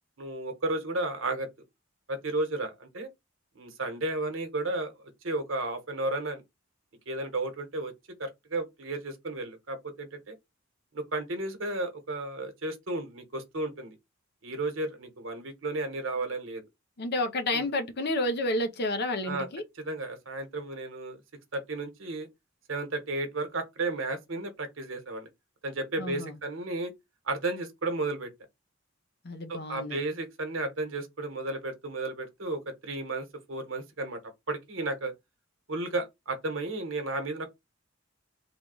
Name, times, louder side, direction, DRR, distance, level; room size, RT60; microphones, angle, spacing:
voice 1, 0.2-1.5 2.1-3.1 3.5-4.9 5.2-6.4 7.1-7.9 8.2-10.3 10.9-13.9 14.4-16.6 17.5-17.7 19.2-19.5 19.8-21.2 21.5-22.3 22.7-25.3 25.6-26.9 27.3-28.3 29.5-34.2 34.5-35.1 35.7-37.5, right 2 dB, 70° right, 1.1 m, -33 dB
voice 2, 17.0-19.6 26.0-26.4 29.2-30.0, left 1 dB, 55° left, 0.7 m, -30 dB
3.5 x 2.3 x 3.8 m
head